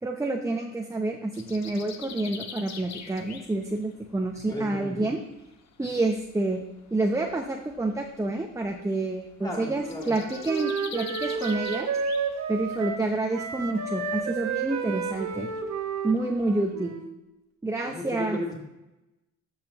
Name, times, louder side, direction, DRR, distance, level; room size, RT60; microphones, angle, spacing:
voice 1, 0.0-5.2 5.8-11.9 12.5-15.5 16.0-17.0 17.6-18.5, right 2 dB, 10° right, 2 dB, 0.7 m, -28 dB
sound 1, 1.3-16.7, left 6 dB, 60° left, 0.9 m, -46 dB
voice 2, 4.5-5.1 9.4-10.2 17.8-18.5, left 2 dB, 15° left, 0 dB, 2.7 m, -35 dB
Wind instrument woodwind instrument, 9.5-13.1 13.3-17.2, right 5 dB, 65° right, 1.0 m, -32 dB
13.5 x 5.7 x 3.0 m, 0.98 s
cardioid pair, 90°, 30 cm